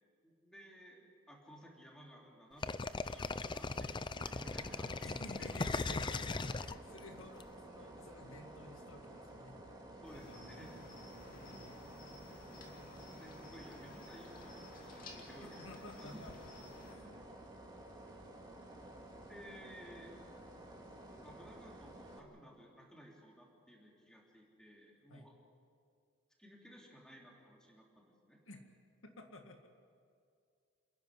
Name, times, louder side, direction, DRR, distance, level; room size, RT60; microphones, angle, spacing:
voice 1, 0.2-5.1 5.4-5.5 9.9-10.8 13.2-15.7 16.0-16.2 19.1-20.1 21.2-25.3 26.4-28.4, equal, 5° left, -2 dB, 3.3 m, -57 dB
sound 1, 2.6-7.4, left 3 dB, 20° left, 0.5 m, -38 dB
sound 2, 4.1-22.2, right 1 dB, 20° right, 2.3 m, -53 dB
voice 2, 5.0-9.6 10.1-10.8 11.3-11.8 15.4-16.5 16.9-17.3 25.1-25.3 28.5-28.6 29.0-29.7, left 2 dB, 70° left, 4 dB, 1.9 m, -53 dB
Cricket, 10.0-16.9, left 2 dB, 40° left, 2.6 m, -55 dB
29.0 x 11.0 x 9.8 m, 2.2 s
head